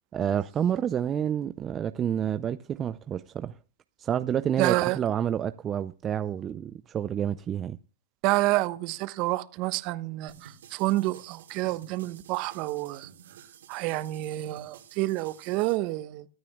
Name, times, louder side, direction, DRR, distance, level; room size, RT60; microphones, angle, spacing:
voice 1, 0.1-3.6 4.0-7.8, right 9 dB, 25° right, 0.5 m, -29 dB
voice 2, 4.6-5.0 8.2-13.1 13.7-16.3, right 19 dB, 45° right, 1.0 m, -28 dB
sound 1, 10.3-15.8, right 8 dB, 80° right, 3.1 m, -51 dB
24.0 x 9.4 x 2.3 m
hypercardioid pair, 115°, 0 cm